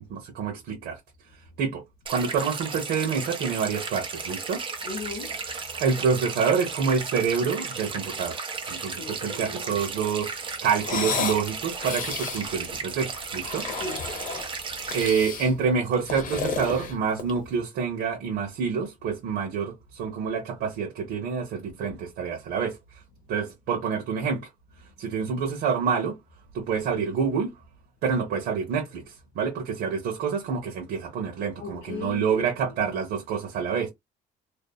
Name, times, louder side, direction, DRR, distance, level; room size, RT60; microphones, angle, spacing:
voice 1, 0.1-1.0 1.6-1.8 2.1-4.6 5.8-8.4 8.7-13.7 14.9-22.8 23.3-24.5 25.0-26.2 26.5-27.5 28.0-33.9, right 6 dB, 75° right, 0.9 m, -27 dB
sound 1, 2.1-15.1, right 4 dB, 30° right, 0.9 m, -35 dB
voice 2, 4.8-5.8 8.9-9.8 13.8-14.1 14.4-14.5 26.8-27.0 31.5-33.0, left 3 dB, 85° left, 0.6 m, -39 dB
sound 2, 10.8-11.4 11.8-12.5 13.3-14.5 14.8-15.5 15.9-17.5, left 5 dB, 50° left, 0.9 m, -32 dB
2.7 x 2.0 x 2.3 m
cardioid pair, 110°, 17 cm